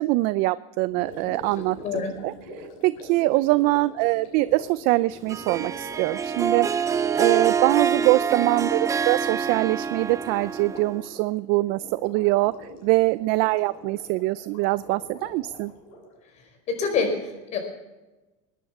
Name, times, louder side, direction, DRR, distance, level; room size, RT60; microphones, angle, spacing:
voice 1, 0.0-6.7 7.2-12.5 12.8-15.7, right 20 dB, 60° right, 16 dB, 0.5 m, -23 dB
Gurgling, 0.9-16.2, equal, 65° left, 5.4 m, -44 dB
voice 2, 1.8-2.1 16.7-17.6, left 5 dB, 40° left, 5 dB, 4.7 m, -26 dB
Harp, 5.3-11.1, right 6 dB, 20° right, 0.6 m, -26 dB
21.5 x 10.0 x 6.0 m, 1.1 s
supercardioid pair, 140°, 17 cm